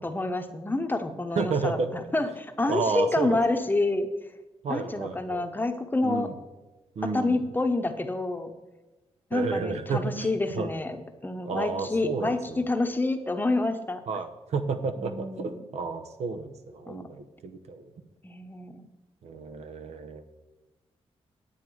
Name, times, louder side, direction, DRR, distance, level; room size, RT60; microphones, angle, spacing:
voice 1, 0.0-4.1 4.7-6.3 7.1-8.5 9.3-11.0 11.2-14.0 15.0-15.7 16.9-17.0 18.2-18.9, left 2 dB, 15° left, 7 dB, 0.9 m, -28 dB
voice 2, 1.4-1.9 2.7-3.6 4.6-5.5 6.0-6.3 7.0-7.4 9.3-10.7 11.4-12.7 14.1-17.9 19.2-20.2, right 4 dB, 75° right, 9 dB, 0.9 m, -31 dB
9.7 x 8.6 x 4.7 m, 1.1 s
cardioid pair, 100°, 11 cm